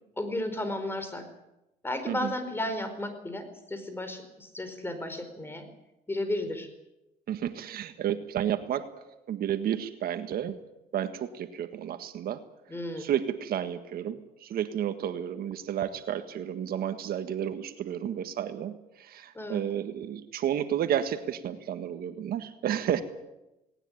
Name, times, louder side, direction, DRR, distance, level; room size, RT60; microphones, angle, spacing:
voice 1, 0.2-1.2 1.8-5.7 6.1-6.7 12.7-13.1 19.3-19.6, left 1 dB, 15° left, 8 dB, 4.7 m, -33 dB
voice 2, 7.3-8.9 9.3-10.6 10.9-12.4 13.0-23.0, right 10 dB, 65° right, 9 dB, 1.7 m, -31 dB
19.0 x 18.5 x 10.0 m, 0.93 s
cardioid pair, 110°, 17 cm